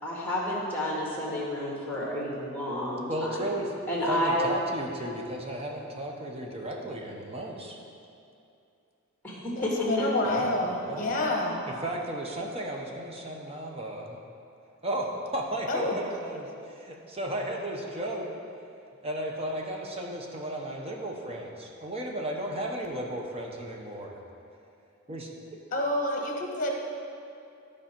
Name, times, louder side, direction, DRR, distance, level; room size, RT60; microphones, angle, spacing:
voice 1, 0.0-3.3 3.9-4.4 9.2-10.1, left 1 dB, 10° left, -4 dB, 1.9 m, -30 dB
voice 2, 3.1-3.7 4.1-7.8 10.2-11.1 11.7-14.2 14.8-18.3 19.0-24.2 25.1-25.6, right 1 dB, 30° right, 0 dB, 0.8 m, -34 dB
voice 3, 9.6-11.6 15.7-16.0 25.7-26.7, left 1 dB, 40° left, 1 dB, 1.2 m, -28 dB
12.5 x 4.9 x 4.4 m, 2.5 s
head